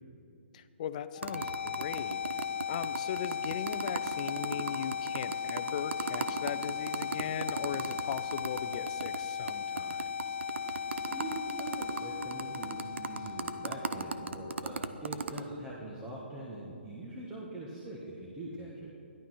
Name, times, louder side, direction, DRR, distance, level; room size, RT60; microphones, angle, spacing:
voice 1, 0.5-2.2 2.7-10.1, left 9 dB, 40° left, 12 dB, 0.6 m, -39 dB
sound 1, 1.1-15.1, left 7 dB, 85° left, 0.6 m, -37 dB
sound 2, 1.2-9.2 9.5-9.6 9.8-15.4, right 4 dB, 80° right, 0.8 m, -36 dB
voice 2, 11.1-18.9, right 1 dB, 15° right, -5 dB, 1.6 m, -42 dB
14.0 x 11.5 x 6.1 m, 2.7 s
hypercardioid pair, 155°, 6 cm